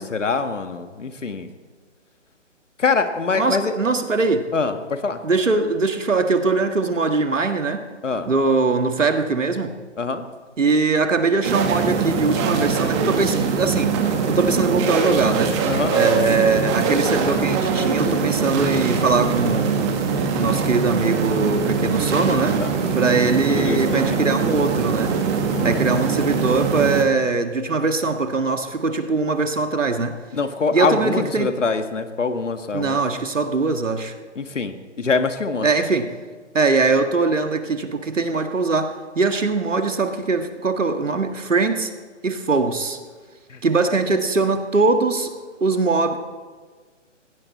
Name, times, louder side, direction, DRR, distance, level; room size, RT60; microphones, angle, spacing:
voice 1, 0.0-1.5 2.8-3.7 4.5-5.2 8.0-8.3 10.0-10.3 15.7-16.2 22.6-22.7 23.5-24.2 25.5-25.9 30.3-33.0 34.3-35.7 43.5-43.6, left 4 dB, 75° left, 8 dB, 1.7 m, -24 dB
voice 2, 3.4-4.5 5.2-7.9 8.3-9.8 10.6-13.9 14.3-15.6 15.9-19.9 20.4-22.7 22.9-25.2 25.6-30.2 30.7-31.5 32.7-34.1 35.6-36.1 36.5-41.9 42.2-43.0 43.6-45.3 45.6-46.2, right 3 dB, 85° right, 7 dB, 1.9 m, -21 dB
sound 1, 11.4-27.0, right 5 dB, 25° right, 1.7 m, -22 dB
21.0 x 16.0 x 4.2 m, 1.4 s
figure-of-eight pair, 145°, 37 cm